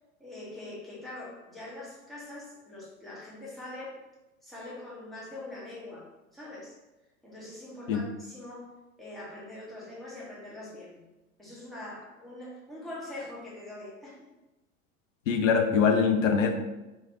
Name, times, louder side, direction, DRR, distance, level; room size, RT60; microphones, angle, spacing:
voice 1, 0.2-4.0 4.4-6.8 7.2-11.1 11.4-14.3, left 2 dB, ahead, -7 dB, 0.3 m, -43 dB
voice 2, 15.3-16.5, left 6 dB, 65° left, 5 dB, 0.6 m, -23 dB
3.1 x 2.2 x 2.9 m, 1.0 s
figure-of-eight pair, 90°, 42 cm